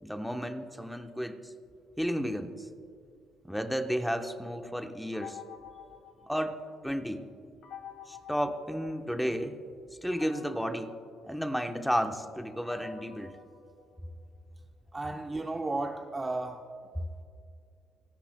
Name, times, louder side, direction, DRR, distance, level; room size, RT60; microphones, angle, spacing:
voice 1, 0.0-1.5 2.0-2.7 3.4-5.4 6.3-7.2 8.1-9.6 10.0-10.9 11.2-13.3, equal, ahead, 6 dB, 1.0 m, -32 dB
sound 1, 5.1-6.9 7.6-9.4 10.1-14.4, left 8 dB, 75° left, 1.6 m, -50 dB
voice 2, 14.9-16.7, right 2 dB, 20° right, 5 dB, 0.6 m, -34 dB
26.0 x 17.0 x 2.2 m, 2.4 s
cardioid pair, 110°, 0 cm